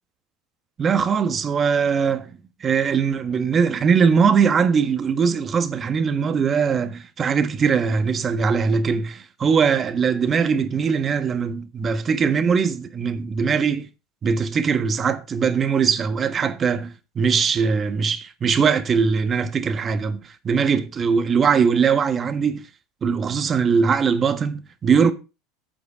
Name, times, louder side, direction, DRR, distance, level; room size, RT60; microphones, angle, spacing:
voice 1, 0.8-13.9 14.2-22.6 23.0-25.1, right 6 dB, 30° right, 1.4 m, -21 dB
8.8 x 7.9 x 4.8 m
supercardioid pair, 100°, 0 cm